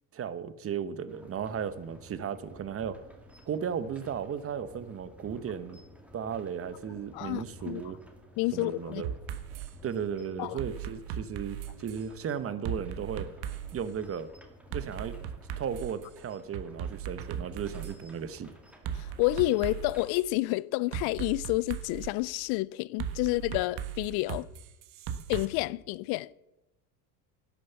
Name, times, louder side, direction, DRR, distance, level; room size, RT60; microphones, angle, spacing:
voice 1, 0.1-3.0 3.5-5.8 6.1-8.0 8.5-9.1 9.8-13.3 13.7-14.3 14.7-15.2 15.6-18.5, right 7 dB, 30° right, 1.0 m, -35 dB
sound 1, 1.1-20.1, equal, 5° right, 2.0 m, -54 dB
voice 2, 7.1-7.8 8.4-9.0 10.4-10.6 18.9-24.5 25.3-26.3, left 20 dB, 60° left, 0.5 m, -29 dB
sound 2, 9.0-9.7 10.6-12.0 12.6-13.8 14.7-16.0 16.5-18.0 18.9-20.2 20.9-22.1 23.0-25.5, right 9 dB, 65° right, 1.4 m, -37 dB
11.5 x 9.8 x 7.1 m
supercardioid pair, 115°, 43 cm